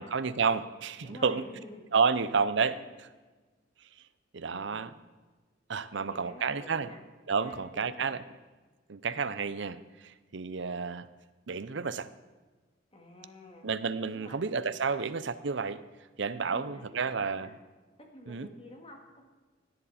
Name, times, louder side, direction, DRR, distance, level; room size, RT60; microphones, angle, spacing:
voice 1, 0.0-1.4 1.9-2.8 4.3-4.9 5.7-6.9 7.3-8.2 8.9-11.1 11.5-12.1 13.6-15.8 16.2-17.5 18.3-18.5, right 5 dB, 65° right, 14 dB, 0.6 m, -30 dB
voice 2, 1.0-3.0 4.5-4.7 5.9-7.0 7.4-8.2 12.9-13.7 14.1-15.1 16.4-17.6 18.1-19.2, left 1 dB, 30° left, 2 dB, 2.1 m, -50 dB
17.5 x 10.0 x 4.3 m, 1.3 s
head